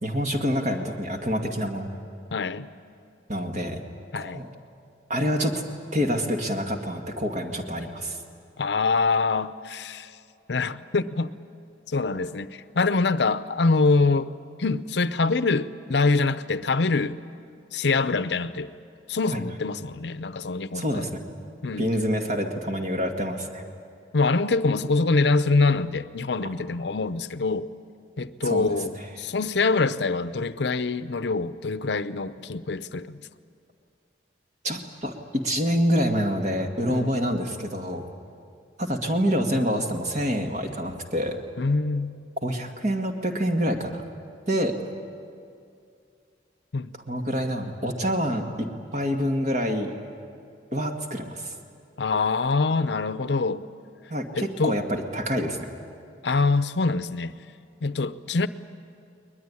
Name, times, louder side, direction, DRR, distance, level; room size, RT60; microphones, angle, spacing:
voice 1, 0.0-1.9 3.3-3.8 4.2-4.5 5.1-5.6 5.9-8.2 19.3-19.4 20.7-21.2 21.8-23.6 28.4-28.8 34.6-38.0 38.8-41.4 42.4-44.0 44.5-44.8 47.1-48.4 48.9-49.9 50.7-51.5 54.1-55.6, equal, 40° right, 3 dB, 2.1 m, -26 dB
voice 2, 2.3-2.7 4.1-4.4 8.6-10.1 10.5-11.3 11.9-14.3 14.6-17.2 17.7-18.7 19.1-21.1 21.6-21.9 24.1-27.7 28.2-33.2 36.9-37.2 41.6-42.1 46.7-46.9 52.0-53.6 54.3-54.8 56.2-57.3 57.8-58.5, left 3 dB, 70° left, 13 dB, 0.7 m, -24 dB
21.5 x 21.0 x 9.8 m, 2.4 s
head